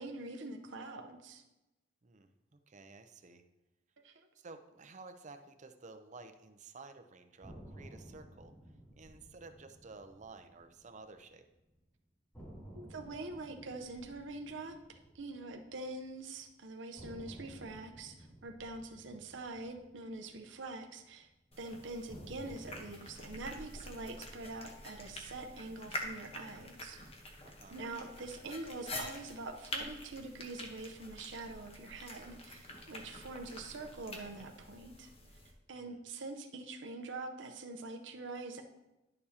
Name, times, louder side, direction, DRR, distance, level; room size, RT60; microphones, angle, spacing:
voice 1, 0.0-1.4 4.0-4.3 12.7-21.3 21.6-27.0 27.7-35.1 35.7-38.6, right 2 dB, 80° right, 4 dB, 0.8 m, -44 dB
voice 2, 2.0-3.4 4.3-8.5 9.0-11.5 27.4-27.8 35.7-36.0, right 3 dB, 40° right, 7 dB, 0.6 m, -53 dB
sound 1, 7.4-11.5 11.8-11.9 12.3-16.4 17.0-21.3 22.1-26.4, right 1 dB, 15° left, 3.2 m, -55 dB
sound 2, 21.5-35.5, left 1 dB, 35° left, 1.1 m, -47 dB
10.5 x 6.7 x 2.8 m, 0.99 s
head